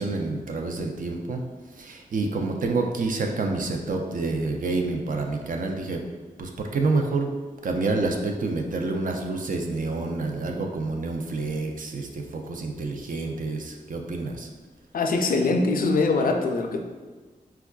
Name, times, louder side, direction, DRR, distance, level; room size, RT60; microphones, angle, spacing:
voice 1, 0.0-1.4 1.8-6.0 6.4-7.3 7.6-14.5, right 3 dB, 65° right, 2 dB, 0.4 m, -28 dB
voice 2, 14.9-16.8, left 3 dB, 70° left, 4 dB, 0.4 m, -23 dB
4.4 x 2.3 x 2.3 m, 1.3 s
cardioid pair, 60°, 15 cm